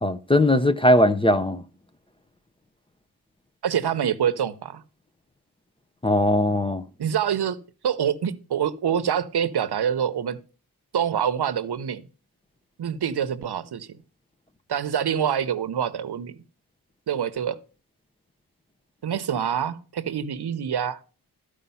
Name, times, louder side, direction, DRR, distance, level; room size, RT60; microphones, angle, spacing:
voice 1, 0.0-1.6 6.0-6.8, left 1 dB, 15° left, 0.5 m, -19 dB
voice 2, 3.6-4.8 7.0-7.6 7.8-10.4 10.9-12.0 12.8-13.9 14.7-16.4 17.1-17.6 19.0-21.0, right 8 dB, 80° right, 0.8 m, -26 dB
13.0 x 5.0 x 5.5 m
wide cardioid pair, 145°, 39 cm